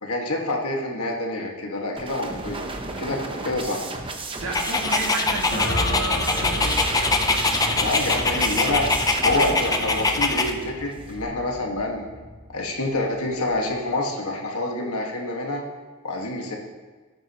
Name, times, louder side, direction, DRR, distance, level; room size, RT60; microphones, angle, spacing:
voice 1, 0.0-2.6 3.0-3.9 7.8-12.0 12.5-15.6 16.0-16.6, left 2 dB, 90° left, 0 dB, 1.7 m, -27 dB
sound 1, 2.0-11.2, right 3 dB, 25° right, 0.9 m, -34 dB
voice 2, 4.4-6.8, right 2 dB, 65° right, -2 dB, 2.3 m, -32 dB
Dog, 4.5-10.5, left 3 dB, 15° left, 0.6 m, -23 dB
sound 2, 5.5-13.7, equal, 50° left, 3.7 m, -33 dB
16.5 x 8.9 x 3.0 m, 1.4 s
head